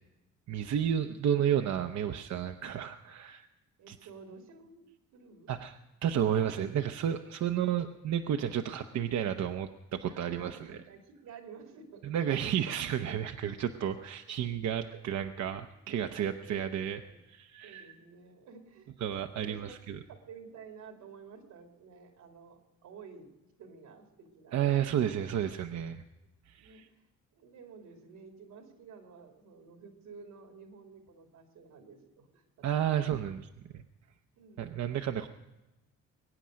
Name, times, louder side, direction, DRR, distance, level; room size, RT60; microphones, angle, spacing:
voice 1, 0.5-3.5 3.9-4.0 5.5-5.8 6.0-10.7 12.0-17.0 17.3-17.9 19.0-20.0 24.5-26.0 26.5-26.8 32.6-33.4 33.7-33.8 34.6-35.3, right 9 dB, 65° right, 7 dB, 0.8 m, -31 dB
voice 2, 3.8-4.9 5.1-5.5 6.5-6.7 7.2-7.7 10.0-12.1 14.9-15.0 15.9-16.6 17.1-17.2 17.6-18.9 19.3-19.8 20.1-23.3 23.6-25.1 26.6-26.8 27.3-33.3 34.4-34.7, right 5 dB, 85° right, 4 dB, 2.8 m, -52 dB
22.5 x 9.1 x 6.3 m, 1.0 s
cardioid pair, 90°, 30 cm